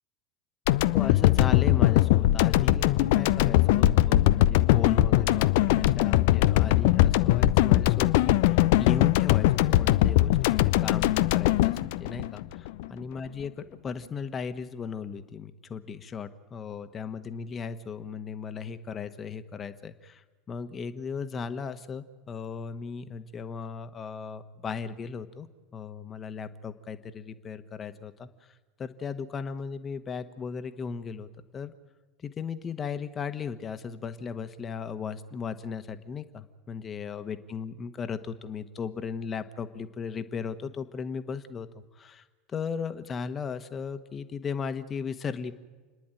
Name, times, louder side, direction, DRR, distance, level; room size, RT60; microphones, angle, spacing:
sound 1, 0.7-12.9, left 15 dB, 60° left, 0.6 m, -21 dB
voice 1, 0.9-20.2 20.5-25.5 25.7-28.3 28.8-31.3 31.5-31.7 32.2-41.7 42.0-42.2 42.5-45.5, left 6 dB, 30° left, 10 dB, 1.4 m, -36 dB
29.5 x 10.5 x 9.1 m, 1.3 s
figure-of-eight pair, 75°, 0 cm